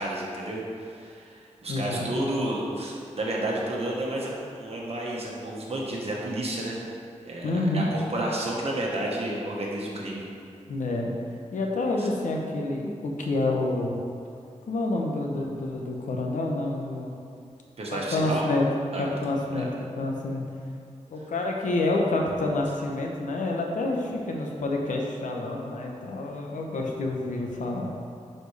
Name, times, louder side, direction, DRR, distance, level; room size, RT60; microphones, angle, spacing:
voice 1, 0.0-4.3 4.6-6.8 7.2-10.3 12.0-12.1 17.8-18.4 18.9-19.7, right 1 dB, 55° right, -3 dB, 1.3 m, -31 dB
voice 2, 1.7-2.1 7.4-7.9 10.7-11.1 11.5-14.0 14.7-17.1 17.9-18.6 19.0-20.4 21.1-27.9, left 2 dB, 85° left, 0 dB, 0.9 m, -28 dB
10.0 x 4.3 x 3.3 m, 2.4 s
wide cardioid pair, 105°, 13 cm